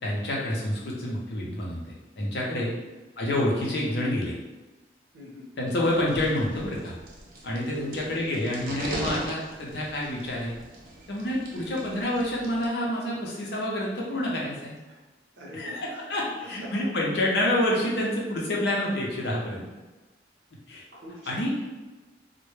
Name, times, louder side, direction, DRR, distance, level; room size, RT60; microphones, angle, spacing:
voice 1, 0.0-2.7 3.2-4.3 5.6-6.9 7.4-10.5 11.1-14.8 15.5-19.7 20.7-20.8 21.3-21.5, left 1 dB, 70° left, -3 dB, 0.6 m, -28 dB
voice 2, 5.1-5.5 7.7-8.1 11.5-11.8 14.9-15.0 15.4-16.0 16.4-16.9 20.9-21.7, equal, 85° right, -3 dB, 0.7 m, -43 dB
sound 1, 5.9-12.7, right 1 dB, 50° right, 0.4 m, -40 dB
2.1 x 2.1 x 3.1 m, 1.2 s
head